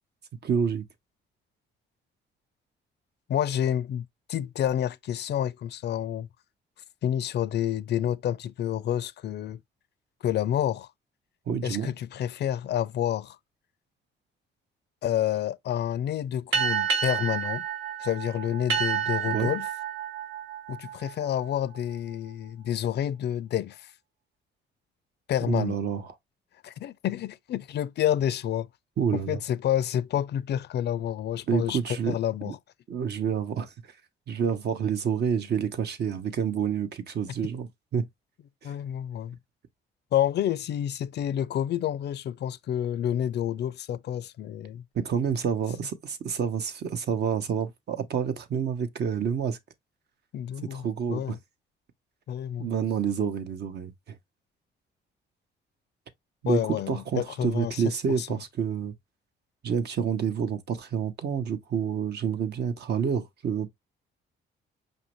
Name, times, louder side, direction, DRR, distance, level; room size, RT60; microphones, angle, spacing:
voice 1, 0.4-0.8 11.5-11.9 19.3-19.5 25.5-26.0 29.0-29.4 31.5-32.2 32.4-32.5 32.9-33.7 34.3-38.0 38.6-38.7 44.9-49.6 50.7-51.4 52.6-53.9 56.4-56.6 56.9-58.9 59.6-63.7, right 7 dB, 55° right, 0.8 m, -28 dB
voice 2, 3.3-6.3 7.0-9.6 10.2-10.9 11.6-13.4 15.0-17.7 18.0-19.7 20.7-23.9 25.3-25.8 26.6-28.7 29.1-32.6 38.6-39.4 40.1-44.8 50.3-51.3 52.3-52.7 56.4-57.8 58.2-58.3, left 10 dB, 60° left, 0.4 m, -29 dB
sound 1, 16.5-21.6, right 8 dB, 80° right, 1.3 m, -30 dB
5.2 x 2.7 x 3.0 m
cardioid pair, 90°, 20 cm